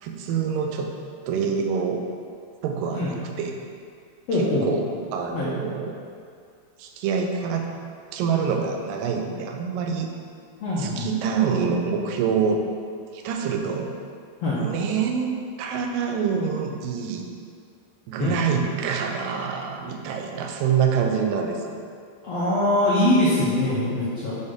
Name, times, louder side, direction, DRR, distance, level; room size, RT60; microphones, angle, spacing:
voice 1, 0.0-0.9 1.3-2.0 2.6-3.5 4.3-6.0 6.8-7.7 8.1-10.1 10.8-12.6 13.1-13.9 14.5-17.3 18.1-21.6, right 6 dB, 80° right, 3 dB, 2.2 m, -26 dB
voice 2, 4.3-4.7 5.3-5.5 10.6-11.1 14.4-14.6 18.2-18.6 22.2-24.4, left 1 dB, 70° left, -9 dB, 1.6 m, -23 dB
6.9 x 4.3 x 5.2 m, 2.2 s
omnidirectional pair, 4.2 m